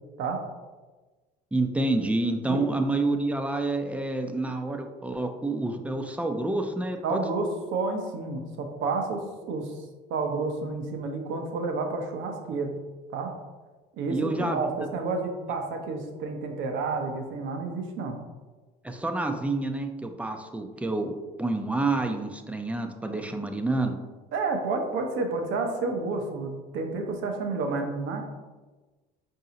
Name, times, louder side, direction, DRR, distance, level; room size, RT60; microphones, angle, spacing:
voice 1, 1.5-7.2 14.1-14.6 18.8-21.1 21.4-23.9, right 2 dB, 5° right, 5 dB, 0.5 m, -28 dB
voice 2, 7.0-9.7 10.1-12.7 13.1-13.3 14.0-18.2 24.3-28.3, right 3 dB, 65° right, 4 dB, 0.7 m, -30 dB
4.7 x 2.7 x 2.7 m, 1.3 s
supercardioid pair, 70°, 21 cm